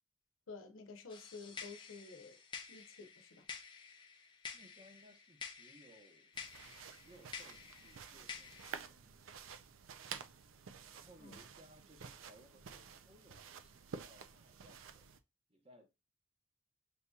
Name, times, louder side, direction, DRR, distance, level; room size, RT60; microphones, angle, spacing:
voice 1, 0.5-2.4 2.7-3.4 11.2-11.4, left 4 dB, 80° left, 0.8 m, -51 dB
sound 1, 1.1-8.8, left 6 dB, 25° left, 0.5 m, -51 dB
voice 2, 4.5-6.3 7.0-9.6 10.9-15.0 15.5-16.1, right 1 dB, 30° right, 0.8 m, -63 dB
sound 2, 6.3-15.2, right 6 dB, 75° right, 0.5 m, -51 dB
6.7 x 2.8 x 2.3 m
head